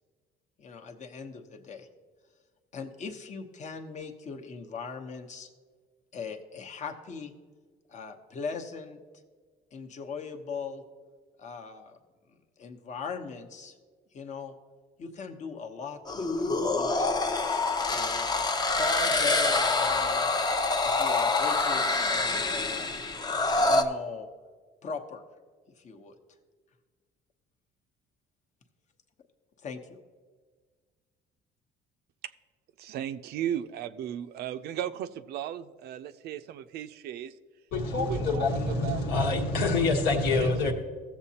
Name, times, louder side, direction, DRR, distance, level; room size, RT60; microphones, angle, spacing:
voice 1, 0.6-1.9 2.7-5.5 6.1-7.3 7.9-9.0 9.7-10.8 11.4-12.0 12.3-13.8 14.1-14.6 15.0-17.1 17.9-20.3 20.8-22.9 23.6-24.3 24.8-25.2 25.8-26.2 29.6-30.0, left 5 dB, 45° left, 5 dB, 0.9 m, -39 dB
sound 1, 16.1-23.8, left 3 dB, 25° left, 0.6 m, -26 dB
voice 2, 32.8-37.3 38.0-39.3 40.4-40.7, right 10 dB, 70° right, 13 dB, 0.4 m, -36 dB
voice 3, 37.7-40.7, left 3 dB, 80° left, 0 dB, 1.3 m, -26 dB
15.5 x 7.3 x 2.8 m, 1.5 s
cardioid pair, 110°, 17 cm